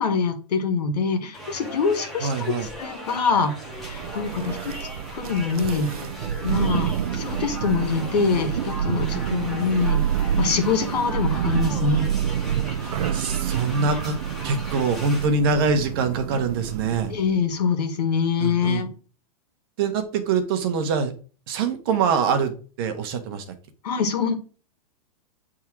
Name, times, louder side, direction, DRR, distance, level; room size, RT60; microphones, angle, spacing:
voice 1, 0.0-3.5 3.8-4.7 5.1-5.9 6.4-10.0 10.4-12.1 17.1-18.9 23.8-24.3, left 5 dB, 90° left, 7 dB, 1.8 m, -24 dB
sound 1, 1.3-15.3, equal, ahead, 1.0 m, -38 dB
voice 2, 2.2-2.7 12.7-14.1 14.4-17.1 18.4-18.8 19.8-21.1 21.5-22.5 22.8-23.4, right 5 dB, 35° right, 8 dB, 1.0 m, -24 dB
Thunder, 3.7-17.3, right 9 dB, 65° right, 0.6 m, -28 dB
7.9 x 3.7 x 4.5 m, 0.38 s
supercardioid pair, 175°, 20 cm